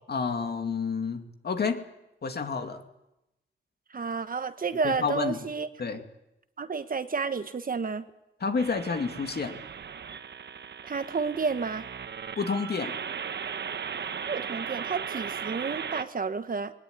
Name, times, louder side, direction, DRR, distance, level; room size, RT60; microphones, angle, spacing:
voice 1, 0.1-1.8 2.2-2.8 4.8-5.4 5.8-6.0 8.4-9.6 12.4-12.9, left 5 dB, 55° left, 6 dB, 2.4 m, -29 dB
voice 2, 3.9-5.7 6.6-8.0 10.8-11.8 14.2-16.7, right 5 dB, 45° right, 10 dB, 1.3 m, -31 dB
sound 1, 8.6-16.0, right 7 dB, 65° right, 1.1 m, -37 dB
21.5 x 19.5 x 9.7 m, 0.90 s
wide cardioid pair, 105°, 19 cm